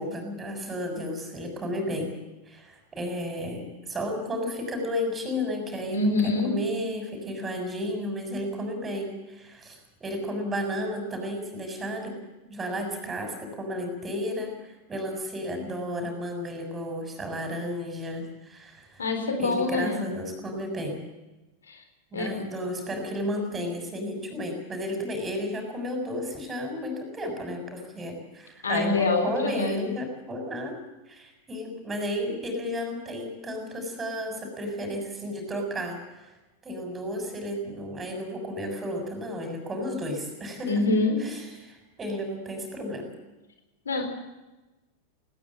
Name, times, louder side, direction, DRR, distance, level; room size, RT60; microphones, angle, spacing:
voice 1, 0.0-2.1 2.5-12.2 12.4-19.0 19.4-21.0 22.1-30.8 31.1-36.3 36.6-40.9 41.2-43.1, equal, 20° right, 4 dB, 7.0 m, -33 dB
voice 2, 5.9-6.5 19.0-20.0 21.7-21.8 22.1-22.3 28.6-29.8 40.7-41.2 43.9-44.0, left 3 dB, 70° left, 6 dB, 4.0 m, -25 dB
20.5 x 19.0 x 7.4 m, 1.1 s
figure-of-eight pair, 90°, 0 cm